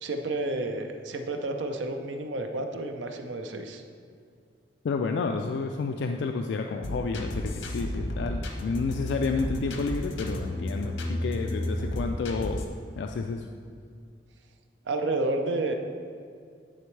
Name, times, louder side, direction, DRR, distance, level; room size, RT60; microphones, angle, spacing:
voice 1, 0.0-3.8 14.9-15.7, right 2 dB, 80° right, 5 dB, 0.6 m, -30 dB
voice 2, 4.8-12.6 13.0-13.5, left 4 dB, 70° left, 4 dB, 0.3 m, -30 dB
sound 1, 6.8-12.7, left 1 dB, 90° left, 0.8 m, -32 dB
10.0 x 4.2 x 3.2 m, 2.3 s
head